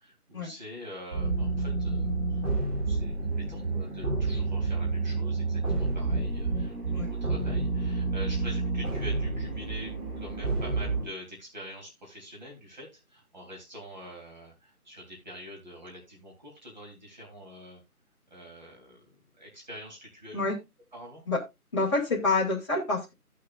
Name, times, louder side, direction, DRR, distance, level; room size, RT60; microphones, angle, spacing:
voice 1, 0.0-2.4 2.9-17.8 18.3-19.0 19.4-20.6 20.9-21.2, equal, 30° right, -2 dB, 3.3 m, -45 dB
sound 1, 1.1-11.0, right 3 dB, 55° right, 6.8 m, -29 dB
voice 2, 21.7-23.1, left 3 dB, 20° left, -8 dB, 2.0 m, -27 dB
16.0 x 6.6 x 2.5 m, 0.22 s
figure-of-eight pair, 170°, 46 cm